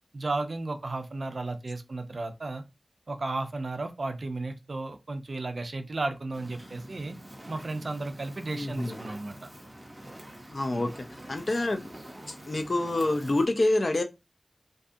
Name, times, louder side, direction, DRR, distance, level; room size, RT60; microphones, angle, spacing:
voice 1, 0.1-2.6 3.1-7.2 7.5-9.4 10.7-10.9, right 2 dB, 75° right, 0.4 m, -34 dB
Fire, 6.3-13.4, right 1 dB, 20° right, 0.8 m, -46 dB
voice 2, 8.5-9.0 10.5-11.9 12.3-14.0, left 2 dB, 60° left, 0.4 m, -27 dB
2.6 x 2.3 x 2.5 m
wide cardioid pair, 65°, 0 cm